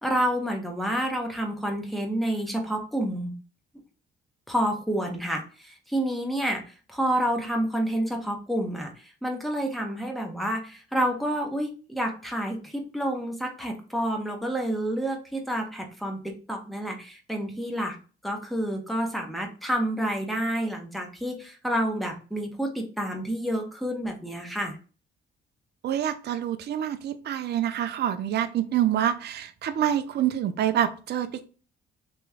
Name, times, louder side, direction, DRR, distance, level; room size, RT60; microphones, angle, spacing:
voice 1, 0.0-3.3 4.5-8.9 9.2-17.9 18.2-24.8, right 1 dB, ahead, 1.1 m, -29 dB
voice 2, 25.8-31.4, right 10 dB, 55° right, 0.5 m, -26 dB
3.0 x 3.0 x 3.6 m
cardioid pair, 90°, 20 cm